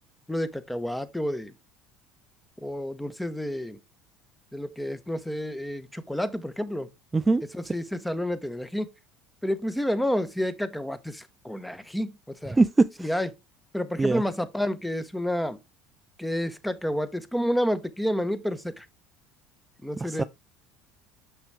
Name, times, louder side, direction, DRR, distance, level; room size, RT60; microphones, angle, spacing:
voice 1, 0.3-1.5 2.6-3.8 4.5-6.9 7.5-8.9 9.4-12.6 13.0-13.3 13.7-15.6 16.2-18.8 19.8-20.2, equal, 5° left, 0.9 m, -29 dB
voice 2, 7.1-7.7 12.5-13.1 14.0-14.2 20.0-20.2, right 3 dB, 20° right, 0.3 m, -23 dB
6.4 x 5.8 x 3.4 m
supercardioid pair, 90°, 0 cm